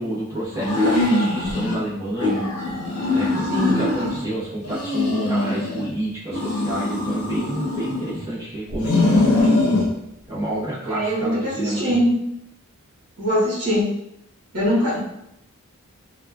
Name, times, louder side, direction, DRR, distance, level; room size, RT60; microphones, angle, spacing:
voice 1, 0.0-2.5 3.1-9.5 10.3-12.0 14.8-14.9, right 1 dB, 15° right, -9 dB, 1.1 m, -29 dB
sound 1, 0.5-1.8 2.2-4.3 4.6-5.9 6.3-8.2 8.7-9.9, left 2 dB, 85° left, 0.8 m, -22 dB
voice 2, 3.5-3.8 10.9-12.1 13.2-13.9 14.5-15.0, equal, 65° right, -8 dB, 1.1 m, -22 dB
2.9 x 2.3 x 2.3 m, 0.79 s
head